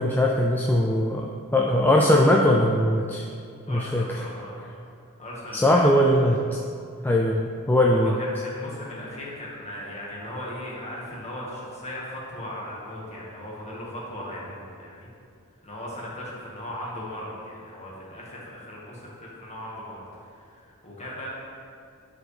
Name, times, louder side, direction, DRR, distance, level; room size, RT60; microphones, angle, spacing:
voice 1, 0.0-3.2 3.7-4.0 5.5-6.4 7.0-8.1, left 1 dB, 10° left, -1 dB, 0.3 m, -20 dB
voice 2, 3.7-4.5 5.2-5.8 7.9-15.1 15.6-21.3, left 1 dB, 30° left, -5 dB, 1.7 m, -37 dB
11.0 x 4.9 x 3.4 m, 2.4 s
head